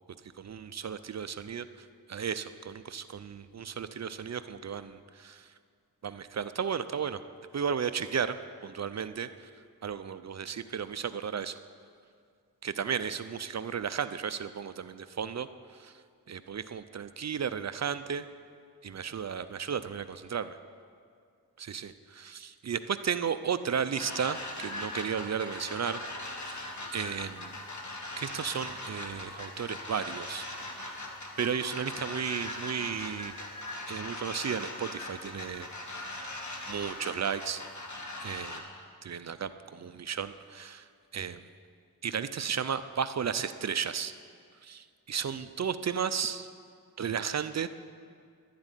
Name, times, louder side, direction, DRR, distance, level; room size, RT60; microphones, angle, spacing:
voice 1, 0.4-5.5 6.0-7.2 7.5-8.4 8.6-9.5 9.8-11.6 12.6-16.0 16.3-18.3 18.8-20.6 21.6-26.7 26.9-27.6 28.2-30.5 31.4-33.3 33.9-36.3 36.7-37.6 38.2-38.6 39.0-41.5 42.0-44.1 44.6-46.5 47.0-47.7, right 7 dB, 45° right, 12 dB, 0.5 m, -34 dB
sound 1, 23.9-38.6, left 2 dB, 50° left, 1.7 m, -40 dB
11.5 x 7.6 x 9.8 m, 2.2 s
wide cardioid pair, 125°, 37 cm